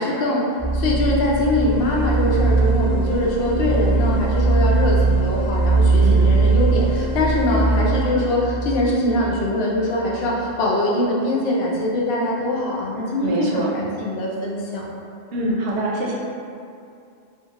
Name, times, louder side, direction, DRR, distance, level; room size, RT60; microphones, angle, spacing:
voice 1, 0.0-14.9, left 1 dB, 80° left, -3 dB, 0.8 m, -22 dB
sound 1, 0.6-10.4, right 3 dB, 5° right, 0.5 m, -20 dB
voice 2, 6.0-6.3 13.2-13.7 15.3-16.2, right 2 dB, 85° right, -3 dB, 0.8 m, -24 dB
2.5 x 2.4 x 2.8 m, 2.5 s
omnidirectional pair, 1.1 m